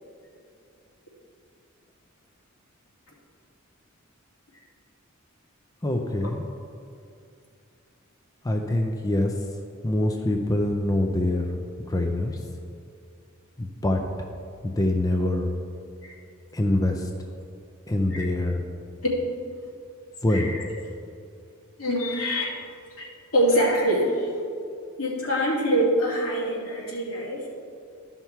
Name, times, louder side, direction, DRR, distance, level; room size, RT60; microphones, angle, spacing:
voice 1, 5.8-6.5 8.4-9.5 9.8-11.6 11.9-12.4 13.6-14.3 14.6-15.5 16.5-17.1 17.9-18.6 20.2-20.5, left 1 dB, 15° left, 3 dB, 0.5 m, -25 dB
voice 2, 20.3-20.7 21.8-22.6 23.0-24.3 25.0-27.5, equal, 80° left, -4 dB, 2.5 m, -25 dB
12.5 x 5.7 x 4.6 m, 2.4 s
head